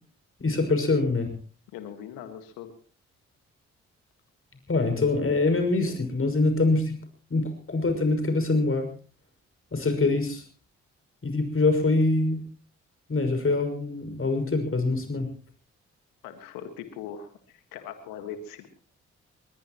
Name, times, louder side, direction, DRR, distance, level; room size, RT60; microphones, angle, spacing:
voice 1, 0.4-1.3 4.7-7.0 7.3-8.9 9.7-10.4 11.2-12.4 13.1-15.3, left 3 dB, 40° left, 6 dB, 6.1 m, -24 dB
voice 2, 1.7-2.7 16.2-18.7, left 8 dB, 80° left, 8 dB, 1.8 m, -40 dB
21.5 x 21.0 x 3.1 m, 0.39 s
hypercardioid pair, 40°, 33 cm